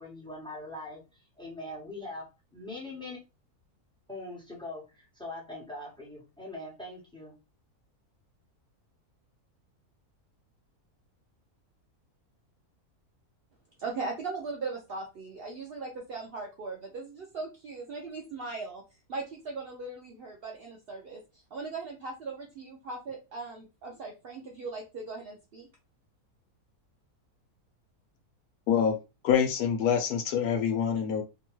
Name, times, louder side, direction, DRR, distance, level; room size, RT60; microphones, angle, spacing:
voice 1, 0.0-3.2 4.1-7.3, left 2 dB, 5° left, -4 dB, 0.9 m, -42 dB
voice 2, 13.8-18.8 19.1-25.7, right 3 dB, 80° right, 0 dB, 0.5 m, -39 dB
voice 3, 29.2-31.2, left 8 dB, 75° left, 6 dB, 1.1 m, -26 dB
2.8 x 2.2 x 3.0 m, 0.28 s
omnidirectional pair, 1.6 m